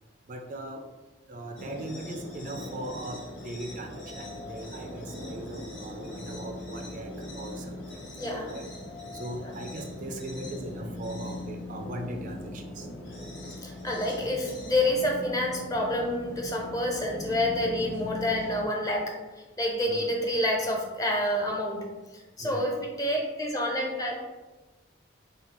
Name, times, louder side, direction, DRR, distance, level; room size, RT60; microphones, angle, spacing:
voice 1, 0.3-0.8 1.3-8.7 9.1-12.9 14.2-14.3 18.0-18.1 19.9-20.1 22.4-22.7, right 1 dB, 40° right, 3 dB, 0.4 m, -39 dB
sound 1, 1.6-18.6, left 1 dB, 75° left, 1.1 m, -40 dB
voice 2, 8.2-8.6 9.4-9.5 13.6-19.1 19.6-21.8 22.1-24.1, left 1 dB, 20° left, 0 dB, 0.6 m, -28 dB
3.9 x 3.6 x 2.9 m, 1.2 s
head